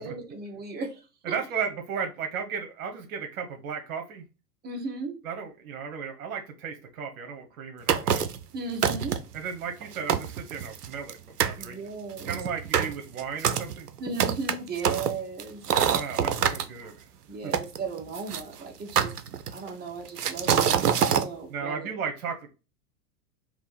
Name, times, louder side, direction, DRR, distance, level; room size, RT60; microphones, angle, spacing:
voice 1, 0.0-1.4 4.6-5.1 8.5-9.2 11.6-12.4 14.0-15.7 17.3-19.1 19.5-21.9, right 4 dB, 20° right, 1 dB, 1.4 m, -36 dB
voice 2, 1.2-4.2 5.2-8.3 9.3-11.7 12.2-13.9 15.7-17.1 17.4-17.5 21.5-22.5, right 6 dB, 65° right, 3 dB, 1.1 m, -35 dB
sound 1, 7.9-8.4 8.8-9.4 9.8-9.9 10.1-11.1 11.4-11.6 12.2-16.6 17.5-18.4 19.0-19.7 20.2-21.3, right 8 dB, 85° right, 0.7 m, -25 dB
3.6 x 3.0 x 4.2 m, 0.30 s
hypercardioid pair, 95°, 46 cm